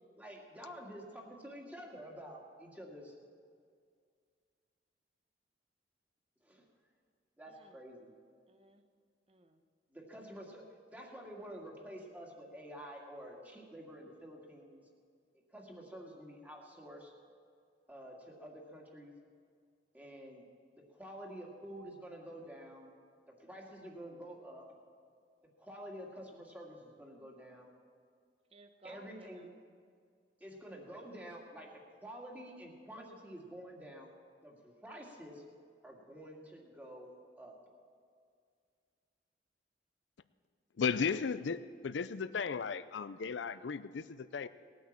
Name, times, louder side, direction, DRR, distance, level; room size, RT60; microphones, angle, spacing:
voice 1, 0.2-3.1 6.4-6.6 7.4-8.1 9.9-10.7 10.9-14.8 15.5-17.1 17.9-19.1 19.9-20.4 20.7-22.9 23.3-24.7 25.6-27.7 28.8-29.5 30.4-34.1 34.4-35.4 35.8-37.1 37.4-37.6, equal, 10° right, -1 dB, 2.1 m, -49 dB
voice 2, 7.5-7.8 8.5-8.8 9.3-9.6 28.5-29.6, right 2 dB, 35° right, 8 dB, 1.1 m, -59 dB
voice 3, 40.8-44.5, left 5 dB, 80° left, 14 dB, 0.5 m, -35 dB
18.5 x 9.4 x 7.3 m, 2.1 s
head